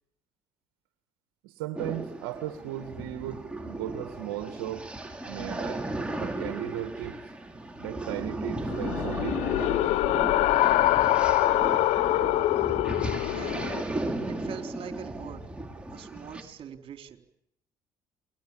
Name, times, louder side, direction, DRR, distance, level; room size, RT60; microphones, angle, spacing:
voice 1, 1.4-4.9 5.3-5.9 6.2-7.2 7.8-9.4, right 13 dB, 80° right, 7 dB, 1.9 m, -36 dB
sound 1, 1.8-16.4, right 2 dB, 10° right, 6.3 m, -35 dB
sound 2, 8.7-13.8, left 16 dB, 70° left, 0.9 m, -24 dB
voice 2, 12.4-13.0 13.3-13.7 14.3-15.4 15.9-17.2, right 8 dB, 50° right, 5 dB, 3.9 m, -43 dB
30.0 x 24.0 x 7.3 m, 0.77 s
hypercardioid pair, 60°, 12 cm